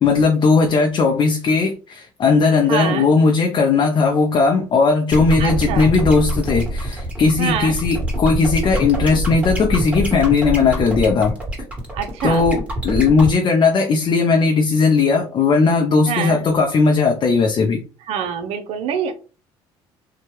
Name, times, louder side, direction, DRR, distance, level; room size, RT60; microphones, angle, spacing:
voice 1, 0.0-11.4 12.2-17.8, left 4 dB, 45° left, 0.5 m, -17 dB
voice 2, 2.7-3.1 5.4-5.9 7.4-7.8 11.9-12.5 16.1-16.4 18.1-19.1, right 8 dB, 70° right, 0.6 m, -25 dB
sound 1, 5.1-13.3, right 1 dB, 10° right, 1.5 m, -25 dB
2.8 x 2.2 x 3.1 m
supercardioid pair, 75°, 11 cm